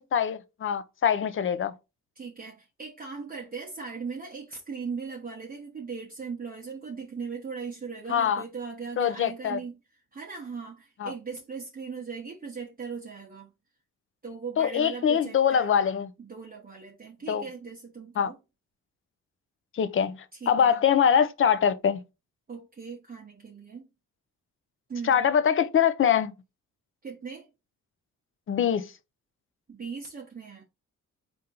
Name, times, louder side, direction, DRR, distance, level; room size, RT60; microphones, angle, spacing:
voice 1, 0.0-1.7 8.1-8.4 9.0-9.6 11.0-11.1 14.6-16.1 17.3-17.4 18.2-18.3 19.7-20.2 20.5-22.0 25.0-26.3 28.5-28.9, left 8 dB, 40° left, 0.5 m, -23 dB
voice 2, 2.2-9.8 10.1-13.5 14.2-15.8 16.2-18.4 20.3-20.8 22.5-23.9 24.9-25.3 27.0-27.5 29.7-30.6, right 5 dB, 30° right, 0.8 m, -39 dB
4.2 x 2.6 x 3.7 m
cardioid pair, 120°, 31 cm